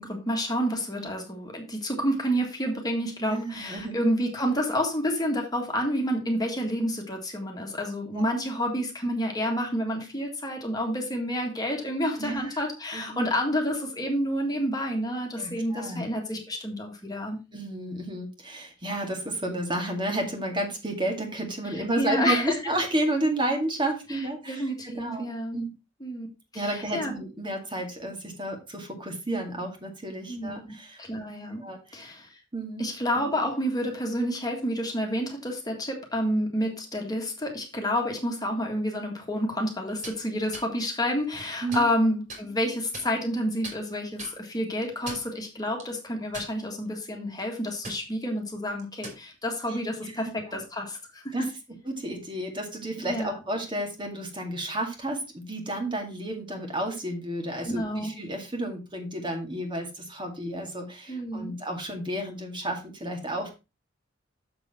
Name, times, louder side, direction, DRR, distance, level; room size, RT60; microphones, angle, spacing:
voice 1, 0.0-17.4 22.0-22.6 24.1-24.2 24.5-25.6 26.0-26.3 26.5-27.1 30.3-31.7 31.9-32.4 32.8-51.3 53.0-53.4 57.6-58.1 61.1-61.5, equal, 20° left, 2 dB, 1.8 m, -29 dB
voice 2, 3.3-4.0 8.1-8.3 12.2-12.6 12.9-13.3 15.4-16.1 17.5-25.7 26.5-31.0 31.6-32.0 32.5-32.9 41.6-41.9 49.7-50.1 50.5-50.6 51.3-51.5 51.8-63.5, right 1 dB, 25° right, 3 dB, 2.0 m, -31 dB
sound 1, 39.9-40.2 40.5-40.7 41.3-41.9 42.3-42.4 42.9-43.4 43.6-43.8 44.2-44.4 44.9-45.3 45.8-45.9 46.3-46.9 47.2-47.4 47.8-48.0 48.8-49.2, right 2 dB, 45° right, 3.1 m, -39 dB
7.0 x 6.9 x 4.2 m, 0.27 s
head